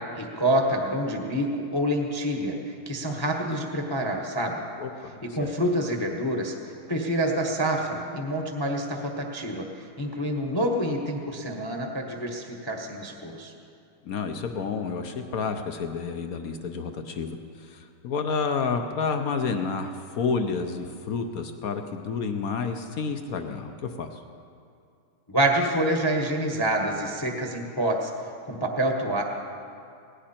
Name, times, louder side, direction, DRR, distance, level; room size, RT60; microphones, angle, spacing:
voice 1, 0.2-4.6 5.3-6.5 6.9-13.5 25.3-28.1 28.4-29.2, right 1 dB, 15° left, 2 dB, 0.8 m, -27 dB
voice 2, 4.8-5.5 14.0-24.2, left 5 dB, 65° left, 7 dB, 0.9 m, -30 dB
18.5 x 16.5 x 4.4 m, 2.4 s
omnidirectional pair, 2.3 m